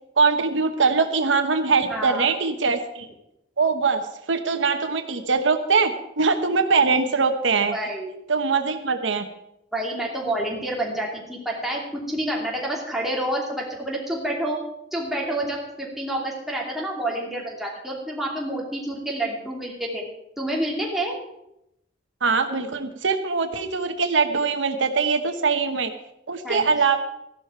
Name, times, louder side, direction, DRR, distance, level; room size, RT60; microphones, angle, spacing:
voice 1, 0.2-3.1 3.6-4.0 4.3-7.8 8.3-9.2 22.2-25.9 26.3-27.0, right 4 dB, 85° right, 7 dB, 1.1 m, -22 dB
voice 2, 1.9-2.3 7.7-8.1 9.7-14.6 14.9-20.0 20.4-21.1 26.4-26.7, right 1 dB, ahead, -3 dB, 2.7 m, -28 dB
14.0 x 11.5 x 4.6 m, 0.83 s
head